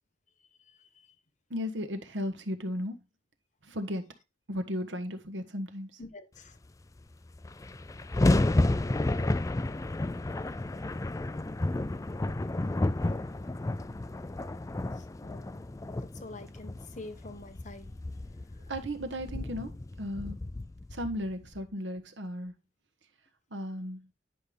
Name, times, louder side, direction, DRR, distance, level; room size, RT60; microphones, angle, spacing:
voice 1, 1.5-3.0 3.6-4.1 4.5-6.0 18.7-20.4 20.9-22.5 23.5-24.1, equal, 75° right, 1.4 m, -35 dB
voice 2, 6.0-6.6 15.2-15.6 16.2-17.9, left 2 dB, 40° left, 1.0 m, -46 dB
sound 1, 7.0-7.1 7.3-21.6, left 2 dB, 20° left, 0.4 m, -31 dB
10.0 x 5.5 x 3.4 m
head